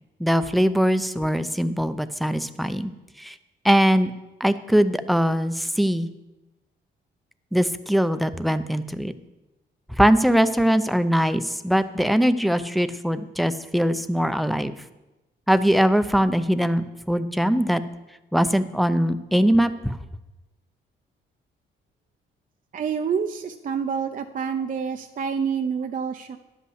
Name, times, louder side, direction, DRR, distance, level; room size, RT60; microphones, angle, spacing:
voice 1, 0.2-2.9 3.2-3.3 3.6-4.1 4.4-6.1 7.5-9.1 10.0-14.7 15.5-17.8 18.3-20.0, equal, ahead, 11 dB, 0.6 m, -21 dB
voice 2, 22.7-26.4, right 6 dB, 40° right, 6 dB, 0.6 m, -27 dB
11.0 x 5.6 x 7.9 m, 1.0 s
cardioid pair, 90°, 20 cm